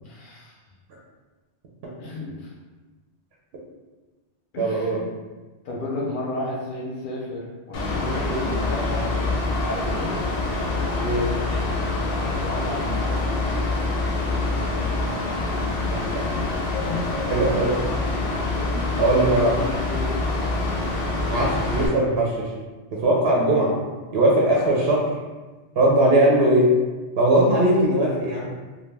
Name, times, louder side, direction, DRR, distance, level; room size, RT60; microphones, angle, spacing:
voice 1, 0.0-0.6 2.0-2.5 4.5-5.1 5.6-9.3 9.6-10.2 11.9-13.1 15.7-15.8 16.9-17.1 18.7-19.0 19.3-20.2 20.6-20.7, left 1 dB, 60° left, -3 dB, 0.6 m, -32 dB
voice 2, 4.6-5.0 11.0-11.3 17.3-17.8 19.0-19.6 21.3-22.5 22.9-23.8 24.1-25.1 25.8-26.8 27.2-28.5, right 1 dB, 65° right, -3 dB, 0.7 m, -19 dB
Mechanical fan, 7.7-21.9, left 2 dB, 85° left, 0.9 m, -25 dB
2.2 x 2.2 x 3.2 m, 1.2 s
omnidirectional pair, 1.2 m